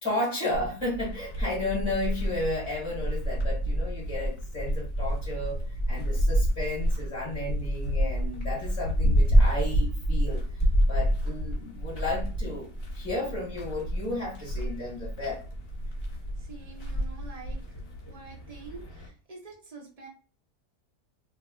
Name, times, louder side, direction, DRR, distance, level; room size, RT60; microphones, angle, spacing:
voice 1, 0.0-15.4, left 2 dB, 20° left, -5 dB, 1.2 m, -33 dB
sound 1, 0.5-19.1, equal, 40° left, 1.1 m, -28 dB
voice 2, 16.4-17.6 18.1-20.1, right 4 dB, 70° right, 0 dB, 0.3 m, -46 dB
2.7 x 2.2 x 3.6 m, 0.37 s
omnidirectional pair, 1.7 m